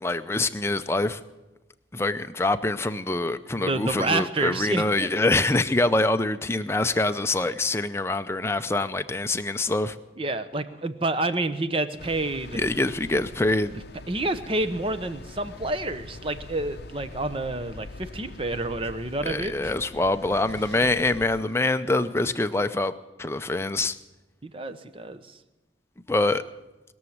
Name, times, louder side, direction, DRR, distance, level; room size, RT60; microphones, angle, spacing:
voice 1, 0.0-1.2 1.9-10.0 12.5-13.7 19.2-22.9 23.2-24.0 26.1-26.4, left 2 dB, 15° left, 10 dB, 0.5 m, -25 dB
voice 2, 3.5-5.1 10.2-12.6 14.1-19.7 24.4-25.2, right 2 dB, 30° right, 11 dB, 0.8 m, -29 dB
sound 1, 12.0-21.4, left 2 dB, 60° left, 0.6 m, -43 dB
sound 2, 17.9-22.6, right 1 dB, 70° right, 2.8 m, -51 dB
21.0 x 7.2 x 9.4 m, 1.1 s
head